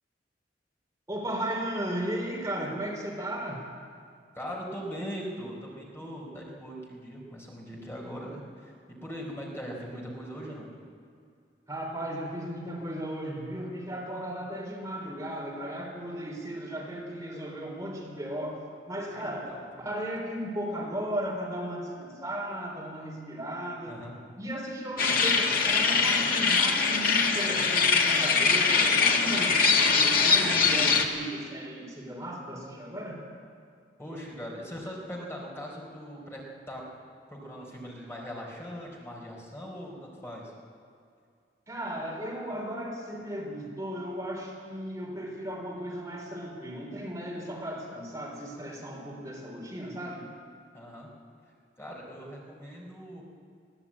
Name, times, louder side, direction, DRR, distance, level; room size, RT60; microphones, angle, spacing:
voice 1, 1.1-3.7 11.7-18.6 18.9-19.5 19.8-24.0 24.4-33.2 41.7-50.3, right 1 dB, 20° right, -2 dB, 3.8 m, -35 dB
voice 2, 4.3-10.7 19.1-19.9 23.9-24.1 34.0-36.8 37.3-40.5 50.7-51.1 51.8-53.2, equal, 15° left, -2 dB, 4.2 m, -40 dB
sound 1, 25.0-31.0, left 5 dB, 55° left, 1.9 m, -23 dB
21.5 x 17.0 x 8.7 m, 2.3 s
head